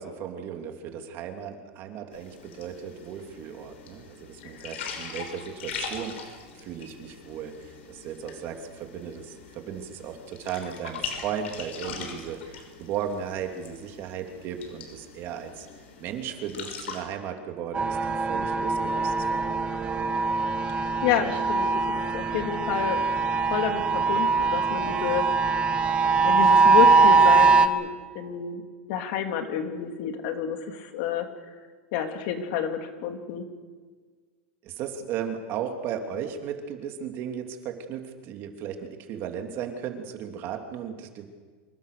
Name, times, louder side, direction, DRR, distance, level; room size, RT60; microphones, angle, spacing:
voice 1, 0.0-15.7 16.0-19.9 34.6-41.3, right 8 dB, 35° right, 4 dB, 2.8 m, -36 dB
sound 1, 2.1-17.0, left 6 dB, 85° left, 5.9 m, -41 dB
voice 2, 4.4-4.7 20.7-21.7 22.1-23.0 23.5-25.2 26.2-27.9 28.1-28.6 28.9-31.3 31.9-33.4, left 8 dB, 55° left, 5 dB, 3.0 m, -29 dB
sound 2, 17.7-27.7, right 4 dB, 15° right, 1.2 m, -22 dB
26.5 x 23.0 x 6.8 m, 1.5 s
supercardioid pair, 155°, 6 cm